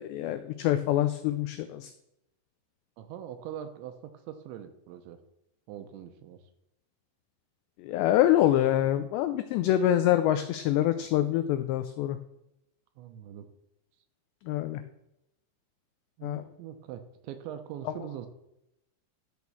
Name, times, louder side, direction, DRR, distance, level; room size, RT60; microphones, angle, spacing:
voice 1, 0.0-1.9 7.8-12.2 14.5-14.8 16.2-16.4, left 12 dB, 90° left, 10 dB, 2.4 m, -25 dB
voice 2, 3.0-5.2 5.7-6.4 13.0-13.5 16.2-18.3, right 10 dB, 75° right, 8 dB, 2.8 m, -42 dB
12.5 x 6.2 x 7.0 m, 0.85 s
omnidirectional pair, 5.7 m